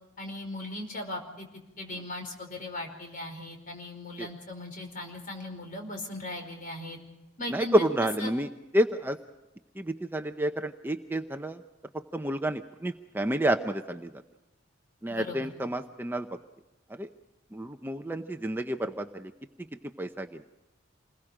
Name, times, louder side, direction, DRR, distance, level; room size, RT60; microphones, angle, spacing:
voice 1, 0.2-1.5 1.8-7.0 7.4-7.7 8.2-8.3 15.1-15.5, left 1 dB, 45° left, 4 dB, 4.9 m, -38 dB
voice 2, 7.5-9.2 9.8-11.6 12.1-14.1 15.0-16.3 17.0-17.1 17.5-19.3 20.0-20.4, right 1 dB, 10° right, 6 dB, 0.7 m, -29 dB
28.0 x 21.0 x 5.0 m, 1.0 s
head